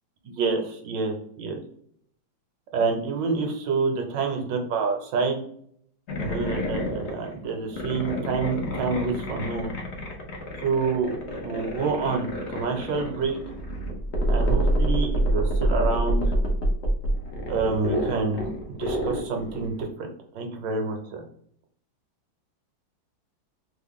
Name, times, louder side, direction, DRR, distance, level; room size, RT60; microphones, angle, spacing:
voice 1, 0.2-1.6 2.7-5.4 6.2-9.8 10.6-11.1 11.4-13.4 14.3-16.2 17.5-18.5 18.8-20.1 20.3-21.2, right 4 dB, 70° right, 3 dB, 1.3 m, -27 dB
sound 1, 6.1-19.9, equal, 65° left, 0.6 m, -27 dB
3.5 x 2.1 x 3.5 m, 0.65 s
omnidirectional pair, 2.1 m